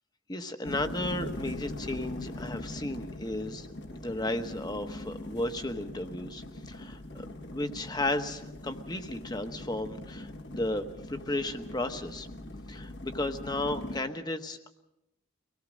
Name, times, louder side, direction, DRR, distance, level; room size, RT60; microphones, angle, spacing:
voice 1, 0.3-12.3 12.7-14.7, left 1 dB, 20° left, 8 dB, 1.1 m, -34 dB
sound 1, 0.6-14.0, left 1 dB, 55° left, 1.2 m, -41 dB
25.0 x 18.0 x 6.3 m, 0.88 s
head